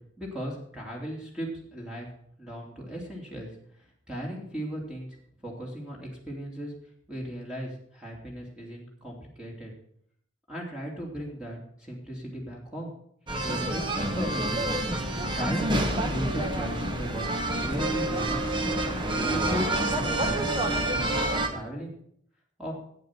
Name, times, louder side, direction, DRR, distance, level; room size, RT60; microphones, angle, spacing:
voice 1, 0.2-2.1 2.4-5.2 5.4-6.7 7.1-9.7 10.5-12.9 13.4-14.7 15.3-17.3 17.5-18.5 19.1-21.9 22.6-22.7, equal, 5° right, -2 dB, 2.7 m, -37 dB
sound 1, 13.3-21.5, right 1 dB, 25° right, 1.2 m, -28 dB
11.0 x 8.8 x 5.9 m, 0.65 s
head